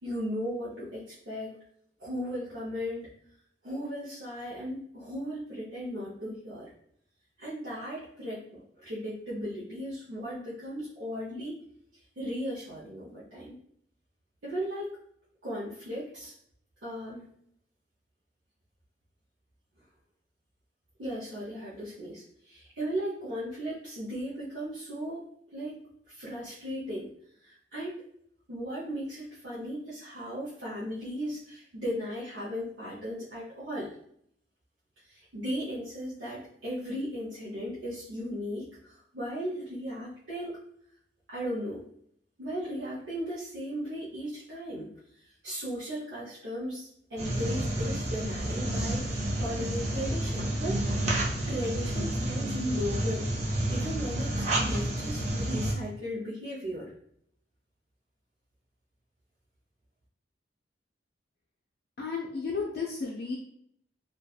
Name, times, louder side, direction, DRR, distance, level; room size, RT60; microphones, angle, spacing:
voice 1, 0.0-1.6 2.0-3.1 3.6-6.7 7.4-11.6 12.2-13.6 14.4-15.0 15.4-16.3 16.8-17.3 21.0-25.2 25.5-27.1 27.4-28.0 28.5-33.9 35.0-40.6 41.3-41.8 42.4-44.9 45.4-53.3 53.7-56.9, equal, 75° right, -9 dB, 0.7 m, -36 dB
sound 1, 47.2-55.7, right 1 dB, 40° right, 0.5 m, -30 dB
voice 2, 62.0-63.4, left 4 dB, 60° left, -4 dB, 0.4 m, -33 dB
2.6 x 2.3 x 2.3 m, 0.68 s
head